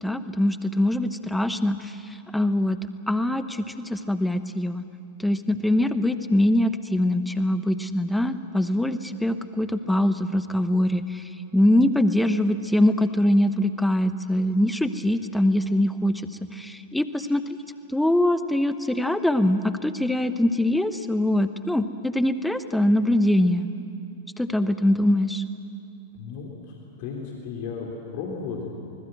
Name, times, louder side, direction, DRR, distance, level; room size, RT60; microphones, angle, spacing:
voice 1, 0.0-1.9 2.3-2.8 3.1-4.8 5.2-11.2 11.5-16.2 16.5-17.6 17.9-23.7 24.4-25.4, left 1 dB, 5° left, 11 dB, 1.1 m, -23 dB
voice 2, 26.1-28.7, left 5 dB, 50° left, -1 dB, 3.5 m, -35 dB
25.5 x 20.5 x 7.9 m, 2.6 s
figure-of-eight pair, 95°, 0 cm